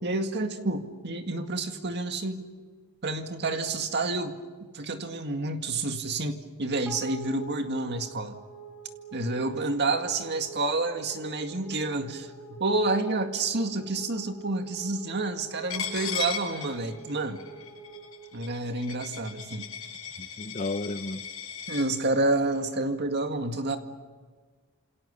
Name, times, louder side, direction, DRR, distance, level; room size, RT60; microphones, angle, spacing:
voice 1, 0.0-2.5 3.0-4.4 4.7-8.4 9.1-17.4 18.3-19.7 21.7-23.8, right 2 dB, 50° right, 2.0 m, -29 dB
sound 1, 6.9-19.4, right 4 dB, 5° right, 5.4 m, -46 dB
Coin (dropping), 15.7-21.9, left 7 dB, 70° left, 8.0 m, -37 dB
voice 2, 20.2-21.2, left 2 dB, 35° left, 0.9 m, -33 dB
28.5 x 27.5 x 6.8 m
head